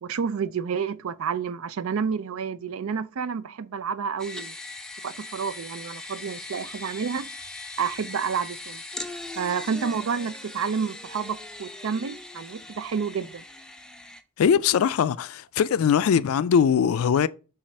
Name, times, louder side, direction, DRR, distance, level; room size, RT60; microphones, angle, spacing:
voice 1, 0.0-4.5 5.0-7.3 7.8-8.8 9.4-13.4, right 6 dB, 85° right, 0.4 m, -29 dB
sound 1, 4.2-14.2, left 2 dB, 5° left, 0.4 m, -40 dB
voice 2, 14.4-17.3, left 7 dB, 80° left, 0.3 m, -21 dB
7.3 x 2.4 x 5.3 m
head